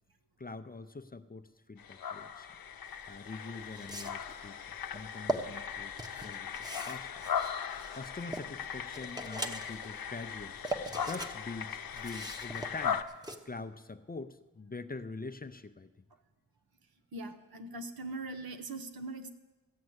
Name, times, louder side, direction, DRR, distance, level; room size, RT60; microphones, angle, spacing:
voice 1, 0.4-2.5 3.1-6.5 6.9-7.2 7.9-10.6 11.0-13.0 13.5-16.0, left 3 dB, 25° left, 11 dB, 0.5 m, -44 dB
sound 1, 1.8-13.0, left 7 dB, 75° left, 0.7 m, -39 dB
sound 2, 3.0-3.1 3.7-4.3 5.0-5.4 6.0-8.5 8.9-9.9 10.3-11.3 11.6-13.4, right 2 dB, 10° right, 1.0 m, -39 dB
voice 2, 17.1-19.3, right 2 dB, 85° right, 7 dB, 1.1 m, -41 dB
14.5 x 8.5 x 7.9 m, 1.2 s
wide cardioid pair, 115°, 35 cm